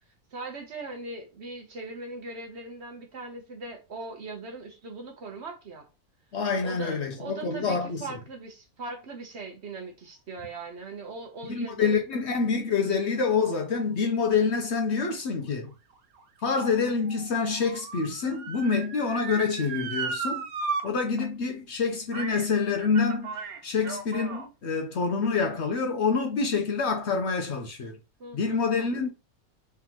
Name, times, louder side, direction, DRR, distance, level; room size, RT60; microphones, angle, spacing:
voice 1, 0.3-5.9 6.6-12.0 28.2-29.1, right 3 dB, 55° right, 1.0 m, -40 dB
voice 2, 6.3-8.1 11.5-15.7 16.4-20.5 20.8-23.4 23.6-28.0 28.3-29.1, left 5 dB, 60° left, 0.9 m, -27 dB
Motor vehicle (road) / Siren, 15.6-20.8 21.2-21.3 22.1-22.5 22.8-24.5 25.2-25.3, right 5 dB, 80° right, 1.2 m, -36 dB
3.9 x 3.5 x 2.9 m
omnidirectional pair, 1.5 m